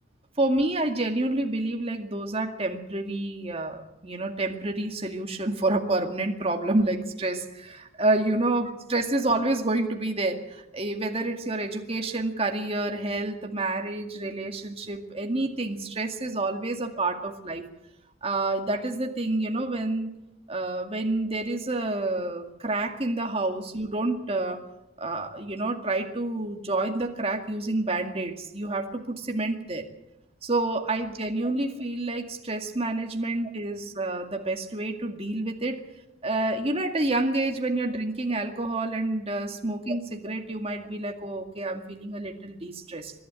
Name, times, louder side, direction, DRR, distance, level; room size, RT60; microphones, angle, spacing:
voice 1, 0.4-8.7 8.9-17.6 18.2-20.1 20.5-24.6 25.0-29.9 30.4-35.8 36.2-43.1, right 2 dB, 30° right, 3 dB, 2.1 m, -28 dB
26.0 x 11.5 x 9.0 m, 0.89 s
head